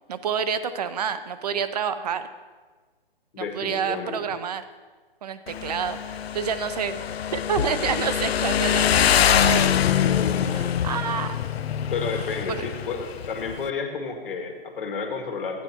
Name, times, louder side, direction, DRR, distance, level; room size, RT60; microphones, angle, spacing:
voice 1, 0.1-2.3 3.4-4.6 5.2-7.0 7.3-9.8 10.5-11.4 12.5-12.7, right 7 dB, 40° right, 12 dB, 0.6 m, -28 dB
voice 2, 3.3-4.4 9.5-10.6 11.9-15.6, left 4 dB, 60° left, 3 dB, 1.7 m, -32 dB
Motorcycle, 5.5-13.7, left 9 dB, 80° left, 0.5 m, -24 dB
12.0 x 9.2 x 2.9 m, 1.4 s
hypercardioid pair, 150°, 30 cm